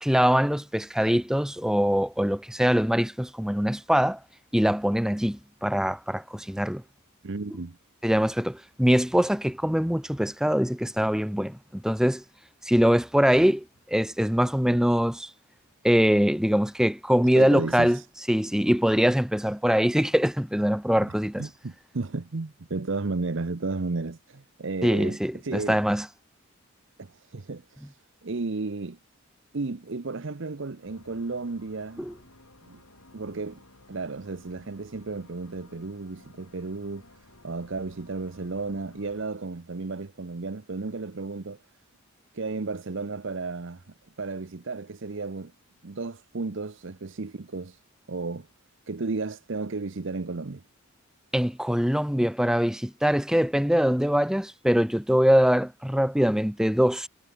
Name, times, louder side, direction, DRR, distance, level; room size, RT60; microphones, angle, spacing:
voice 1, 0.0-4.2 4.5-6.8 8.0-12.2 12.6-15.3 15.8-18.0 18.3-21.5 24.8-26.1 32.0-32.1 51.3-57.1, equal, 5° right, 0.7 m, -23 dB
voice 2, 7.2-7.8 17.3-18.1 21.0-25.2 25.4-25.8 27.0-28.0 28.2-29.0 29.5-32.1 32.7-32.8 33.1-33.6 33.9-41.6 42.3-43.8 44.2-45.5 45.8-47.8 48.1-48.5 48.9-50.6, right 3 dB, 55° right, 0.8 m, -33 dB
sound 1, 30.8-39.3, left 2 dB, 80° left, 6.5 m, -55 dB
head